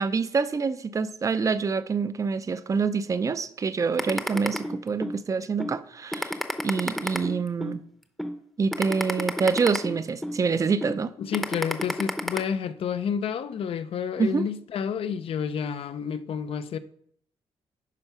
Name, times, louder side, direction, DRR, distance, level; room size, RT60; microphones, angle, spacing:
voice 1, 0.0-6.4 6.6-7.8 8.6-11.1 14.2-14.5, right 5 dB, 30° right, 0.5 m, -26 dB
sound 1, 4.0-5.2 5.6-5.7 6.1-7.8 8.2-8.3 8.7-10.4 10.8-11.0 11.3-12.4, equal, ahead, 0.8 m, -29 dB
voice 2, 11.2-16.8, left 7 dB, 60° left, 0.6 m, -30 dB
10.5 x 4.5 x 5.9 m
cardioid pair, 135°, 11 cm